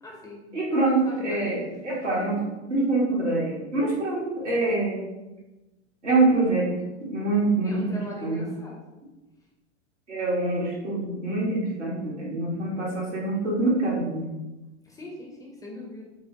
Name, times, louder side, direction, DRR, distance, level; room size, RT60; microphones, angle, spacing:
voice 1, 0.0-0.5 0.7-1.6 7.6-8.8 14.8-16.0, left 2 dB, 10° left, -2 dB, 0.5 m, -41 dB
voice 2, 0.5-1.6 1.8-2.4 2.7-5.0 6.0-6.7 7.0-8.4 10.1-14.2, right 2 dB, 85° right, -5 dB, 1.4 m, -25 dB
4.4 x 2.1 x 2.7 m, 1.1 s
figure-of-eight pair, 100°, 35 cm